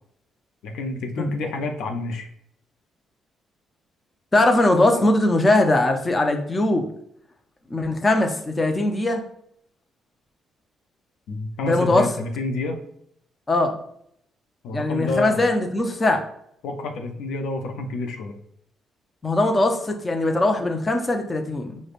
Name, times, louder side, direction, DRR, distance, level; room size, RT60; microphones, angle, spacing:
voice 1, 0.6-2.3 11.3-12.8 14.6-15.4 16.6-18.3, left 2 dB, 80° left, 4 dB, 0.5 m, -29 dB
voice 2, 4.3-6.9 7.7-9.2 11.6-12.1 13.5-13.8 14.7-16.2 19.2-21.8, left 2 dB, 25° left, 4 dB, 0.5 m, -20 dB
4.9 x 2.1 x 2.4 m, 0.70 s
cardioid pair, 90°, 0 cm